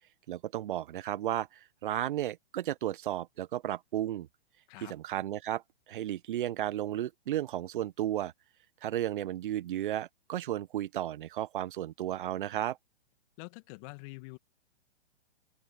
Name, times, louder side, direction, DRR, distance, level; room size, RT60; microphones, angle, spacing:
voice 1, 0.3-4.3 4.8-5.6 5.9-8.3 8.8-12.8, right 12 dB, 50° right, 1.2 m, -33 dB
voice 2, 13.4-14.4, left 28 dB, 35° left, 2.2 m, -46 dB
open air
figure-of-eight pair, 125°, 33 cm